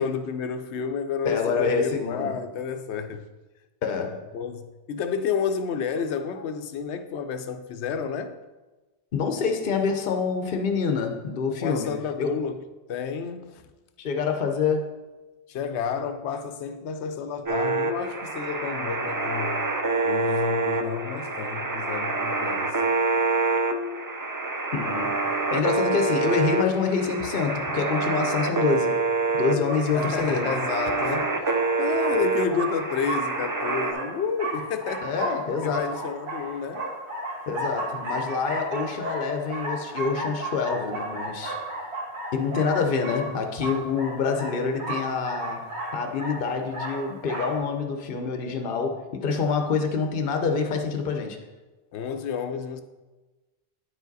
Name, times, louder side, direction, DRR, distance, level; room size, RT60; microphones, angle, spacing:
voice 1, 0.0-3.2 4.0-8.4 11.6-12.6 12.9-13.6 15.5-19.6 20.0-22.8 29.9-35.1 35.6-36.9 51.9-52.8, left 6 dB, 85° left, 0.9 m, -30 dB
voice 2, 1.2-2.4 3.8-4.2 9.1-12.3 14.0-15.0 24.7-29.0 29.3-30.5 35.0-36.0 37.5-41.6 42.3-51.4, left 5 dB, 60° left, 0.9 m, -26 dB
sound 1, 17.5-33.9, right 3 dB, 30° right, 0.3 m, -27 dB
sound 2, 29.7-47.6, right 2 dB, 80° right, 2.0 m, -34 dB
9.7 x 4.9 x 4.0 m
omnidirectional pair, 1.1 m